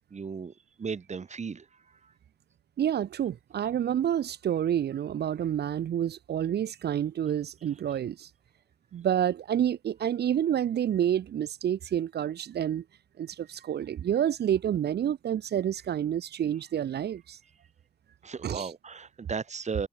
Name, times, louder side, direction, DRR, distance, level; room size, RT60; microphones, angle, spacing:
voice 1, 0.1-0.5 0.8-1.6 18.2-19.9, right 5 dB, 45° right, 1.1 m, -35 dB
voice 2, 2.8-8.3 8.9-12.8 13.2-17.4 18.4-18.7, right 10 dB, 75° right, 0.6 m, -28 dB
cardioid pair, 85°, 17 cm